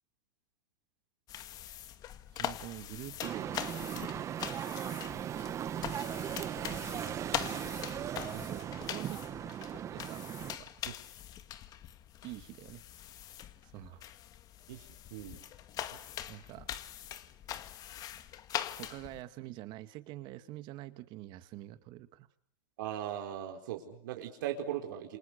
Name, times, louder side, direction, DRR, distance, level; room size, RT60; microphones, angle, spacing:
sound 1, 1.3-19.2, left 11 dB, 35° left, 1.8 m, -42 dB
voice 1, 2.4-4.5 8.3-9.2 9.7-10.7 12.2-12.8 13.7-14.0 16.3-16.7 18.8-22.3, right 16 dB, 45° right, 11 dB, 2.2 m, -46 dB
sound 2, 3.2-10.6, right 10 dB, 30° right, 1.2 m, -38 dB
voice 2, 14.7-15.4 15.9-16.0 22.8-25.2, right 11 dB, 70° right, 3 dB, 4.6 m, -39 dB
28.5 x 27.0 x 6.8 m, 0.63 s
supercardioid pair, 130°, 11 cm